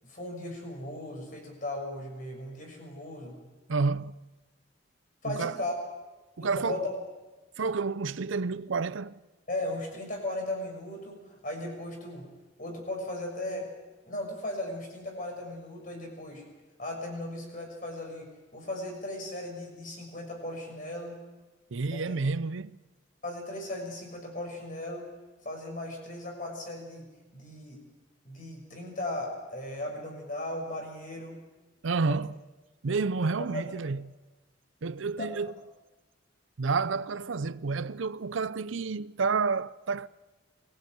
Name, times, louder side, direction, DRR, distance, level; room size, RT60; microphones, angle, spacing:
voice 1, 0.0-3.4 5.2-5.7 6.4-6.9 9.5-12.3 12.6-13.7 14.0-16.4 16.8-21.2 21.9-22.2 23.2-25.1 25.4-27.1 27.3-27.8 28.2-31.4 32.1-32.2 33.4-33.8 35.2-35.3, left 1 dB, 45° left, 6.5 m, -37 dB
voice 2, 3.7-4.1 5.3-5.6 6.4-6.8 7.6-9.2 21.7-22.7 31.8-32.3 32.8-34.0 34.8-35.5 36.6-40.1, right 4 dB, 80° right, 0.6 m, -29 dB
23.0 x 15.5 x 9.2 m
head